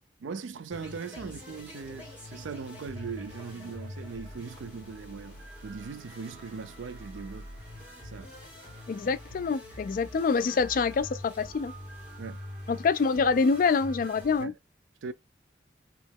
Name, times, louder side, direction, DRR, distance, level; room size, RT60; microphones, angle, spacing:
voice 1, 0.2-5.4 5.6-7.5 8.0-8.3 12.2-12.4 14.4-14.5 15.0-15.1, right 5 dB, 90° right, 0.4 m, -39 dB
sound 1, 0.7-14.4, left 1 dB, 10° right, 1.9 m, -45 dB
sound 2, 5.0-14.1, right 4 dB, 45° right, 2.1 m, -55 dB
voice 2, 8.9-11.7 12.7-14.5, left 4 dB, 45° left, 0.3 m, -26 dB
3.0 x 3.0 x 3.5 m
head